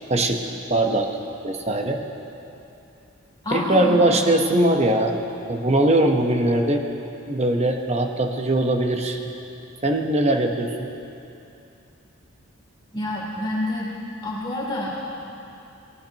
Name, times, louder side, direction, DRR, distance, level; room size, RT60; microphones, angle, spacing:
voice 1, 0.1-0.4 0.7-1.1 1.4-2.0 3.5-5.1 5.5-6.8 7.3-9.2 9.8-10.9, right 1 dB, 30° right, 3 dB, 1.0 m, -21 dB
voice 2, 3.4-4.0 12.9-13.9 14.2-15.1, left 1 dB, 20° left, -6 dB, 3.2 m, -27 dB
19.5 x 18.0 x 3.0 m, 2.8 s
head